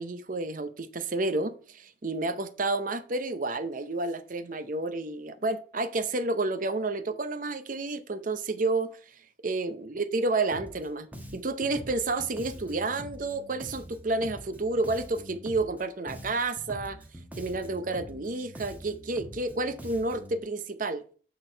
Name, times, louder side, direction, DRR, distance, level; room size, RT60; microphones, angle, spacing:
voice 1, 0.0-8.9 9.4-11.1 11.3-17.0 17.3-21.0, right 2 dB, 45° right, 0.7 m, -30 dB
Bass guitar, 10.5-10.9 11.1-15.8 16.1-20.4, equal, 10° right, 1.1 m, -45 dB
8.5 x 4.4 x 4.5 m
head